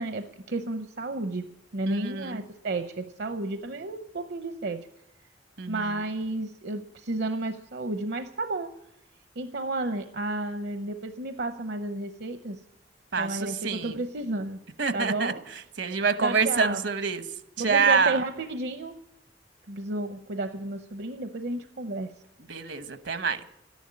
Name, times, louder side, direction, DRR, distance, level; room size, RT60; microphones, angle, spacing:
voice 1, 0.0-4.9 5.7-8.7 9.4-12.6 13.2-14.6 14.9-15.4 16.2-16.8 17.6-19.0 19.7-22.1, right 2 dB, 65° right, 8 dB, 0.7 m, -32 dB
voice 2, 1.9-2.4 5.6-5.9 13.1-14.0 14.8-15.3 15.8-17.2 17.6-18.2 22.5-23.4, right 5 dB, 80° right, 10 dB, 1.1 m, -26 dB
12.5 x 10.5 x 9.7 m, 0.81 s
head